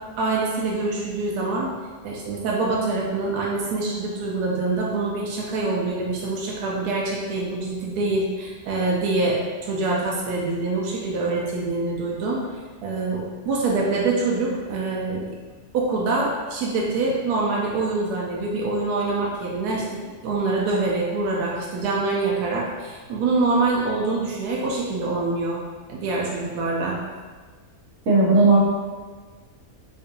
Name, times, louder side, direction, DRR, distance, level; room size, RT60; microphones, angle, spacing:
voice 1, 0.2-1.7 2.0-15.3 15.7-25.6 25.9-27.0, right 3 dB, 85° right, -3 dB, 1.1 m, -25 dB
voice 2, 28.1-28.6, right 3 dB, 65° right, -5 dB, 1.2 m, -15 dB
3.7 x 2.5 x 2.6 m, 1.4 s
omnidirectional pair, 1.6 m